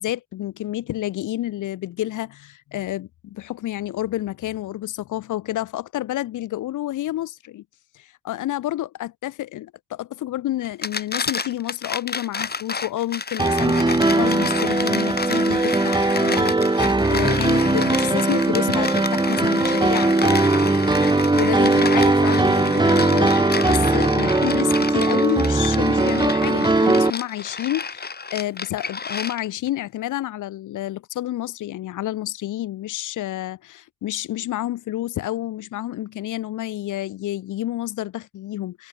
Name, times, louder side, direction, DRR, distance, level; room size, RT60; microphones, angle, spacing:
voice 1, 0.0-7.6 7.9-20.4 21.3-38.9, left 14 dB, 85° left, 4.7 m, -29 dB
sound 1, 10.6-29.7, left 5 dB, 30° left, 5.1 m, -30 dB
Piano, 13.4-27.1, right 2 dB, 15° right, 1.8 m, -19 dB
cardioid pair, 90°, 30 cm